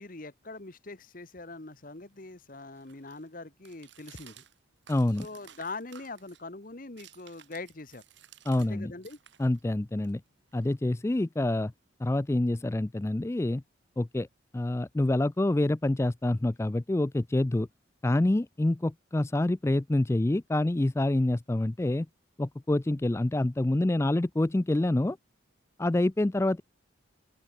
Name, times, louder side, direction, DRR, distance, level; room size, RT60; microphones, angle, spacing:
voice 1, 0.0-4.4 5.2-8.0 8.6-9.2, left 3 dB, 45° left, 1.3 m, -42 dB
sound 1, 1.3-8.7 9.0-11.2, right 9 dB, 65° right, 3.2 m, -56 dB
voice 2, 4.9-5.3 8.5-8.9 9.4-10.2 10.5-11.7 12.0-13.6 14.0-14.3 14.5-17.7 18.0-22.1 22.4-25.2 25.8-26.6, left 1 dB, 15° left, 0.3 m, -27 dB
open air
head